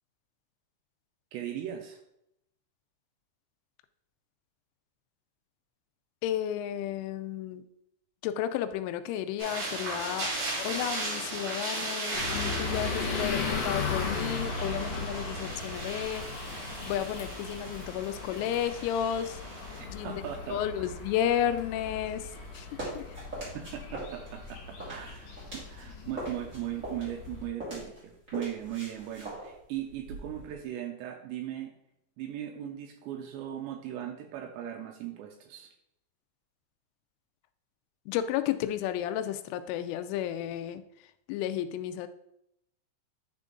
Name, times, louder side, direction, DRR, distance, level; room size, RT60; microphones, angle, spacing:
voice 1, 1.3-2.0 19.8-20.9 23.5-31.7 32.2-35.7, right 11 dB, 85° right, 3 dB, 2.6 m, -38 dB
voice 2, 6.2-7.6 8.2-10.3 10.6-16.2 16.9-19.4 19.9-20.2 20.5-23.0 38.1-40.8 41.3-42.1, left 10 dB, 90° left, 11 dB, 3.1 m, -32 dB
sound 1, 9.4-19.8, right 2 dB, 60° right, 4.5 m, -37 dB
sound 2, 12.1-27.5, left 4 dB, 75° left, 1.8 m, -37 dB
sound 3, 22.3-25.8 26.1-30.5, right 1 dB, 25° right, 1.9 m, -41 dB
9.8 x 3.8 x 3.7 m, 0.79 s
omnidirectional pair, 5.5 m